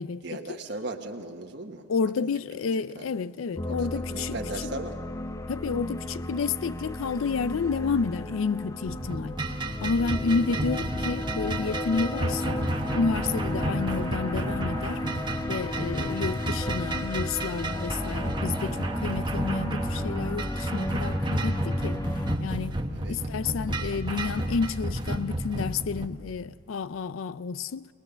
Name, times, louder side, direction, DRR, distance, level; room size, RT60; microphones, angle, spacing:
voice 1, 0.2-1.9 2.2-2.3 2.7-3.1 3.9-5.0 10.5-10.6 15.9-16.0 22.9-23.2, right 2 dB, 60° right, 1.3 m, -37 dB
voice 2, 1.9-4.3 5.5-9.4 9.8-12.6 12.9-15.0 15.5-22.0 22.4-22.8 23.1-27.9, left 5 dB, 90° left, 0.4 m, -30 dB
sound 1, 3.6-22.4, left 1 dB, 15° left, 0.4 m, -34 dB
sound 2, 8.9-26.1, right 1 dB, 25° right, 1.1 m, -31 dB
22.0 x 20.0 x 6.9 m
head